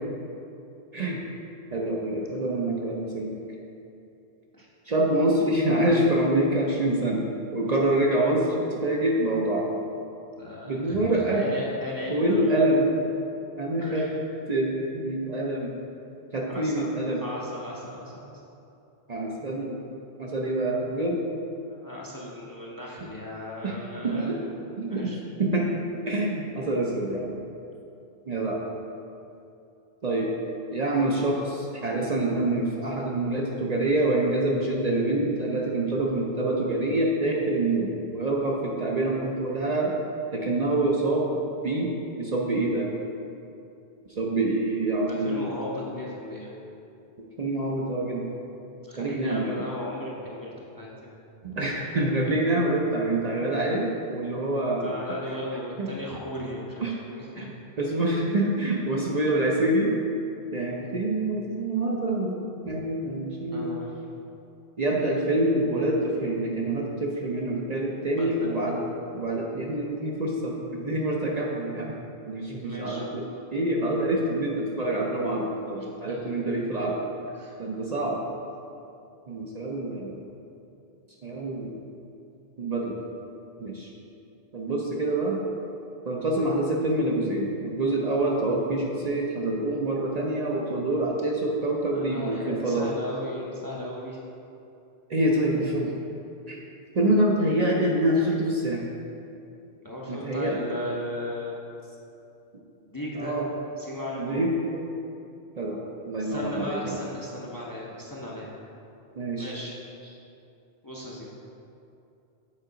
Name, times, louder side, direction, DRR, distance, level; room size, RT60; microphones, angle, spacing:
voice 1, 1.7-3.3 4.9-9.7 10.7-11.4 12.1-12.9 13.6-14.0 14.5-15.7 16.3-17.2 19.1-19.8 20.2-21.2 23.6-23.7 24.0-24.4 24.7-25.1 25.4-25.7 26.1-27.3 28.3-28.6 30.0-30.3 30.7-39.9 40.3-41.4 41.6-41.9 42.2-42.9 44.2-45.5 47.4-48.3 49.0-49.6 51.4-55.0 55.8-55.9 56.8-56.9 57.4-57.5 57.8-59.9 60.5-62.4 62.6-63.7 64.8-68.8 69.1-71.9 72.3-73.2 73.5-77.0 77.6-78.2 79.3-80.1 81.2-81.8 82.6-83.0 83.6-83.9 84.5-85.4 86.0-92.9 95.1-95.9 96.5-96.6 96.9-98.8 100.1-100.6 103.2-103.4 104.1-104.5 105.6-107.0 109.2-109.5, right 1 dB, 45° right, -2 dB, 0.6 m, -26 dB
voice 2, 10.4-12.6 13.8-14.2 16.4-16.9 17.2-18.3 21.7-24.4 24.9-25.2 45.0-46.5 48.8-50.9 54.8-57.5 62.6-62.7 63.5-63.9 68.0-68.5 72.6-73.0 76.1-76.3 77.4-77.6 91.9-94.2 99.8-101.6 102.8-103.4 103.8-104.5 106.2-108.6 109.4-109.7 110.8-111.3, left 1 dB, 25° left, -4 dB, 0.6 m, -36 dB
7.4 x 4.7 x 3.9 m, 2.7 s
omnidirectional pair, 1.1 m